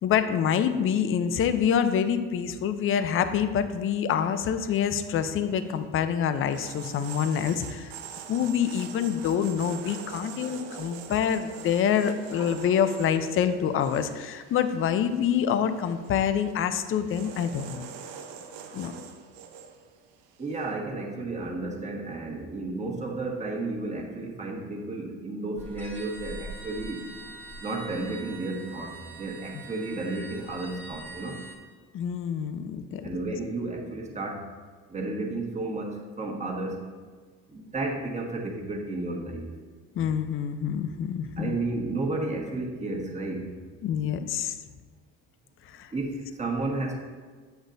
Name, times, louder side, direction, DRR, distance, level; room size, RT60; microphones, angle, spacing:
voice 1, 0.0-7.9 8.3-17.8 18.7-18.9 31.9-33.2 40.0-41.6 43.8-44.6 45.8-45.9, left 8 dB, 40° left, 10 dB, 0.5 m, -26 dB
sound 1, 4.2-20.7, right 7 dB, 85° right, 0.7 m, -45 dB
voice 2, 20.4-27.0 27.6-31.4 33.0-34.4 34.9-36.8 37.5-39.5 41.4-43.5 45.9-47.0, right 2 dB, 20° right, -2 dB, 1.3 m, -32 dB
sound 2, 25.6-31.6, right 3 dB, 5° left, 1.2 m, -43 dB
8.1 x 5.2 x 2.6 m, 1.5 s
supercardioid pair, 95°, 33 cm